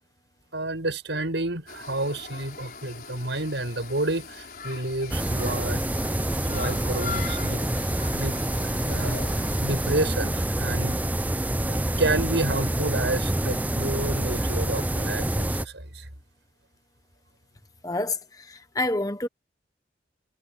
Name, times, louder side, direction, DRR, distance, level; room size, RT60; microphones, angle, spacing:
voice 1, 0.5-5.8 6.5-9.2 9.5-11.0 11.6-16.1, right 2 dB, 90° right, 6.7 m, -30 dB
sound 1, 1.7-10.0, left 5 dB, 55° left, 6.0 m, -40 dB
sound 2, 5.1-15.6, right 1 dB, 10° right, 0.5 m, -27 dB
voice 2, 17.8-18.2 18.5-19.3, left 2 dB, 20° left, 1.1 m, -27 dB
head